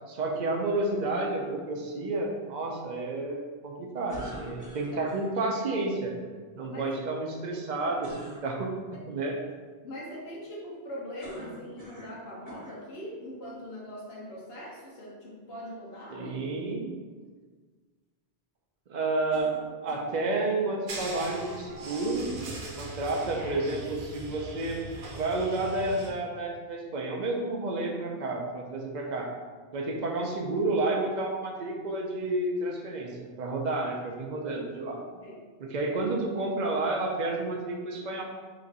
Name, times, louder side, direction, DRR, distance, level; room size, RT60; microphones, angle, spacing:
voice 1, 0.1-6.1 6.6-8.7 9.1-9.4 16.1-17.2 18.9-19.6 19.8-24.8 25.2-29.3 29.7-35.0 35.6-38.2, right 2 dB, 55° right, 0 dB, 0.6 m, -30 dB
sound 1, 4.1-5.3 8.0-8.4 11.2-12.2 12.5-12.8 13.6-13.7 19.3-20.2, equal, 15° right, 1.2 m, -45 dB
voice 2, 7.5-8.0 8.9-9.0 9.8-16.3 35.2-35.5, equal, 70° left, -4 dB, 1.1 m, -41 dB
sound 2, 20.9-26.1, right 2 dB, 80° right, 0.9 m, -41 dB
3.0 x 2.5 x 3.9 m, 1.5 s
omnidirectional pair, 1.1 m